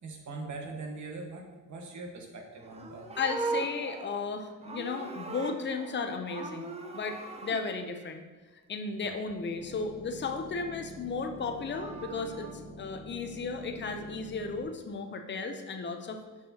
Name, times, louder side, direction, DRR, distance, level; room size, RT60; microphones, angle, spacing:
voice 1, 0.0-3.1 6.7-7.0, right 3 dB, 55° right, 2 dB, 1.0 m, -42 dB
Livestock farm animals working animals, 2.6-6.0 6.3-7.6 11.3-12.5, right 3 dB, 20° right, 0.4 m, -39 dB
voice 2, 3.2-8.2 8.7-16.2, left 4 dB, 35° left, 6 dB, 0.5 m, -35 dB
sound 1, 9.6-14.6, equal, ahead, 1.2 m, -47 dB
6.5 x 6.0 x 2.8 m, 1.3 s
wide cardioid pair, 155°, 34 cm